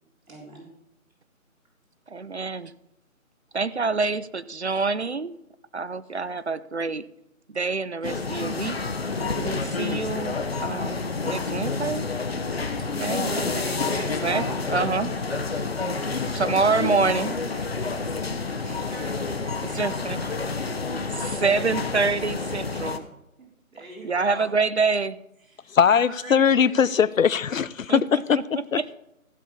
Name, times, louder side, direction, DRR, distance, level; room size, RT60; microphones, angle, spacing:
voice 1, 0.3-0.7 12.9-14.9 15.7-18.3 18.6-21.0 23.7-24.5 25.5-27.1, right 1 dB, 70° right, -3 dB, 3.7 m, -40 dB
voice 2, 2.1-2.7 3.5-5.3 5.7-7.0 7.5-8.8 9.4-12.1 13.0-13.3 14.2-14.4 14.7-15.1 16.3-17.4 19.6-20.3 21.2-23.1 24.0-25.2 27.9-28.8, right 4 dB, 50° right, 16 dB, 0.5 m, -26 dB
sound 1, 8.0-23.0, left 4 dB, 45° left, 1.0 m, -29 dB
voice 3, 25.7-28.9, left 7 dB, 70° left, 20 dB, 0.6 m, -21 dB
15.0 x 6.4 x 5.4 m, 0.84 s
figure-of-eight pair, 170°, 42 cm